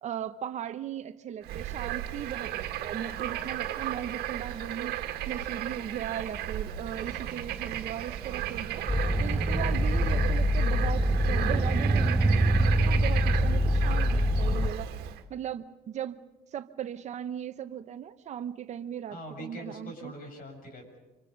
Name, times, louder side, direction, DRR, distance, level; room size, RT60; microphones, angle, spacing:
voice 1, 0.0-5.0 5.3-8.9 9.2-14.9 15.3-16.2 16.5-20.1, right 9 dB, 45° right, 10 dB, 1.0 m, -38 dB
Bird / Frog, 1.4-15.2, right 12 dB, 70° right, 1.8 m, -35 dB
sound 1, 8.9-14.7, equal, 5° right, 0.8 m, -25 dB
voice 2, 19.1-21.0, equal, 60° left, 4 dB, 7.1 m, -43 dB
26.5 x 24.0 x 5.3 m, 1.1 s
cardioid pair, 125°, 17 cm